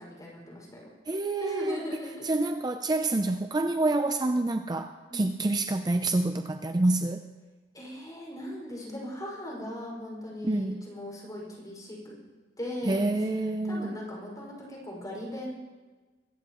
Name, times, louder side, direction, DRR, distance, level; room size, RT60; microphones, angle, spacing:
voice 1, 0.0-0.9 1.4-2.3 5.1-5.4 7.7-12.2 12.6-15.5, left 1 dB, 20° left, -3 dB, 5.4 m, -39 dB
voice 2, 1.1-1.8 2.2-7.2 10.4-10.8 12.9-13.9, right 2 dB, 25° right, 7 dB, 0.5 m, -27 dB
23.5 x 14.5 x 3.0 m, 1.3 s
head